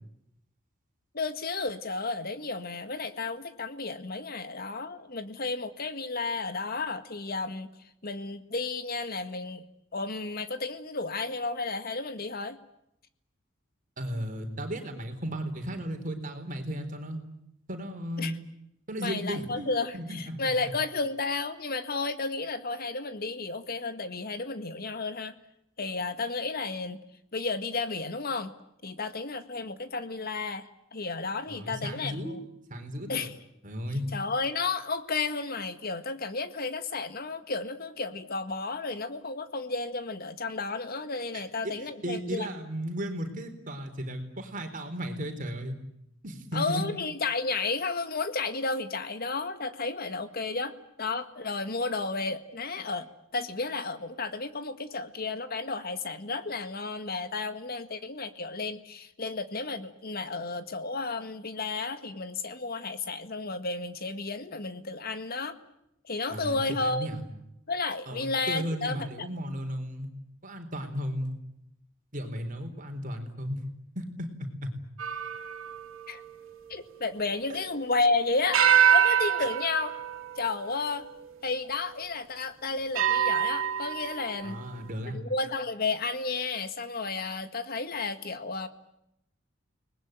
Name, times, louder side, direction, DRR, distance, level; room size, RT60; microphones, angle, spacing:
voice 1, 1.1-7.7 8.0-9.6 9.9-12.6 18.2-18.3 19.0-25.3 25.8-27.0 27.3-28.5 28.8-32.4 33.1-33.4 34.1-42.5 46.5-53.1 53.3-65.6 66.0-67.1 67.7-69.3 76.1-76.2 76.7-78.6 78.9-79.9 80.4-81.1 81.4-84.6 85.1-88.7, left 3 dB, 50° left, 10 dB, 1.8 m, -32 dB
voice 2, 14.0-17.2 17.7-18.3 18.9-20.4 31.5-32.4 32.7-33.3 33.6-34.1 41.3-45.8 46.2-46.9 66.3-67.3 68.1-70.1 70.4-71.4 72.1-73.6 74.0-74.7 77.5-77.6 84.4-85.2, equal, 40° right, 6 dB, 4.1 m, -35 dB
sound 1, 75.0-78.0 78.5-81.3 82.0-82.1 83.0-84.5, right 8 dB, 75° right, 3.2 m, -27 dB
30.0 x 20.5 x 9.2 m, 0.82 s
head